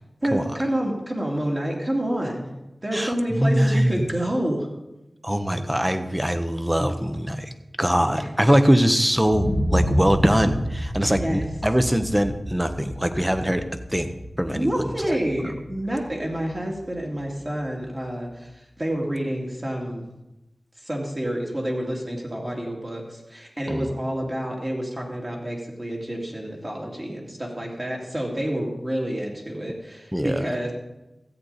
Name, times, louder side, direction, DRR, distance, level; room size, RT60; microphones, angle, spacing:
voice 1, 0.2-2.5 2.8-4.7 5.5-5.7 8.1-8.3 11.0-11.4 14.5-20.0 20.8-30.7, right 1 dB, 35° right, -1 dB, 2.5 m, -28 dB
voice 2, 2.9-4.0 5.2-13.6 13.9-14.8 15.4-15.5 23.7-23.9 30.1-30.5, equal, 10° right, 9 dB, 0.9 m, -22 dB
sound 1, 9.2-17.1 17.5-17.6, equal, 85° right, 4.8 m, -29 dB
13.5 x 8.4 x 4.1 m, 0.99 s
wide cardioid pair, 55°, 0 cm